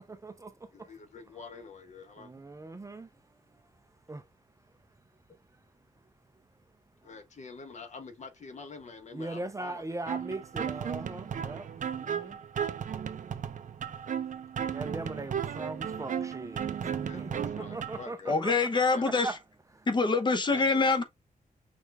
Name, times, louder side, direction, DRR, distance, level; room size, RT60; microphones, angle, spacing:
voice 1, 0.0-0.9 2.2-3.1 3.5-3.7 4.1-4.2 9.1-12.4 14.6-18.5 19.2-19.3 19.7-19.9, right 2 dB, 20° right, 0.5 m, -40 dB
voice 2, 0.7-2.3 7.0-10.0 17.0-18.4 18.9-19.0 20.5-21.0, left 4 dB, 50° left, 1.1 m, -47 dB
sound 1, 10.1-18.1, right 8 dB, 60° right, 0.6 m, -35 dB
voice 3, 18.3-19.4 19.9-21.0, left 3 dB, 30° left, 0.8 m, -25 dB
6.4 x 2.4 x 3.4 m
wide cardioid pair, 165°, 15 cm